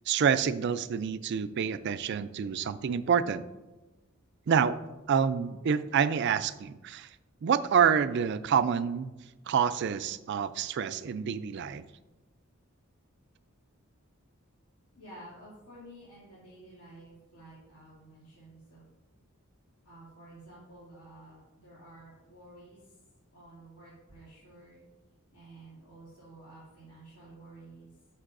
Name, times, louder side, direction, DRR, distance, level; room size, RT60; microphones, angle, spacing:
voice 1, 0.1-3.4 4.5-4.8 5.1-7.1 7.4-9.1 9.5-11.8, right 7 dB, 55° right, 13 dB, 0.3 m, -27 dB
voice 2, 14.9-18.8 19.8-23.0 23.3-24.8 25.3-27.9, right 1 dB, 85° left, -10 dB, 2.5 m, -52 dB
9.9 x 6.5 x 2.5 m, 1.1 s
head